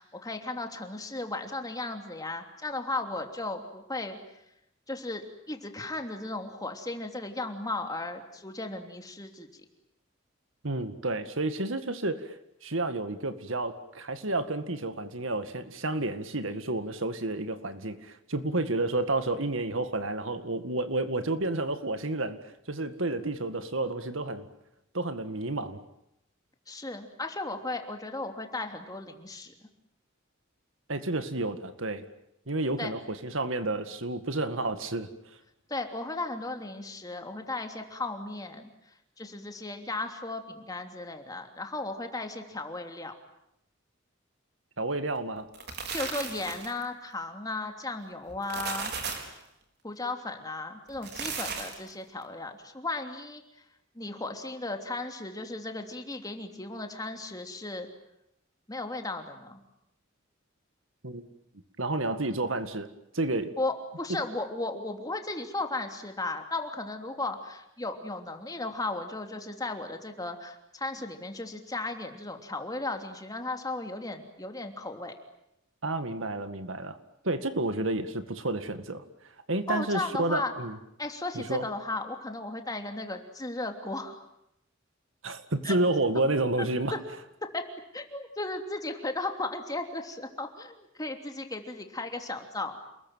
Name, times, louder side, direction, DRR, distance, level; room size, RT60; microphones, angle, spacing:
voice 1, 0.0-4.2 4.9-9.6 26.7-29.5 32.8-32.9 35.7-38.7 39.2-43.1 45.9-48.9 49.8-53.4 53.9-57.9 58.7-59.6 63.6-75.1 79.7-80.5 81.0-84.2 85.6-85.8 86.6-87.0 87.4-87.6 87.9-92.8, left 2 dB, 20° left, 5 dB, 3.1 m, -35 dB
voice 2, 10.6-12.4 12.6-22.4 22.7-24.5 24.9-25.8 30.9-32.0 32.5-35.1 44.8-45.5 61.0-61.3 61.8-62.9 63.1-63.5 75.8-77.0 77.2-79.0 79.5-80.8 81.3-81.7 85.2-86.9, right 2 dB, 75° right, 10 dB, 2.0 m, -30 dB
sound 1, 45.4-46.8 48.3-49.4 50.9-51.9, right 5 dB, 55° right, 4.8 m, -36 dB
29.0 x 21.0 x 9.2 m, 0.82 s
head